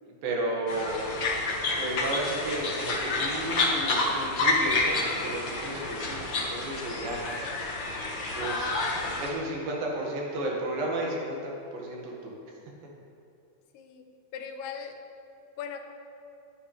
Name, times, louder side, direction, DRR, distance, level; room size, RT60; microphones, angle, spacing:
voice 1, 0.0-1.0 1.8-7.2 8.3-8.7 9.2-12.3, right 1 dB, 70° right, -2 dB, 3.4 m, -33 dB
sound 1, 0.7-9.3, left 3 dB, 60° left, 1.2 m, -29 dB
voice 2, 13.7-14.0 14.3-15.0 15.6-15.8, left 7 dB, 90° left, 5 dB, 2.9 m, -39 dB
18.0 x 10.0 x 3.3 m, 2.6 s
omnidirectional pair, 4.4 m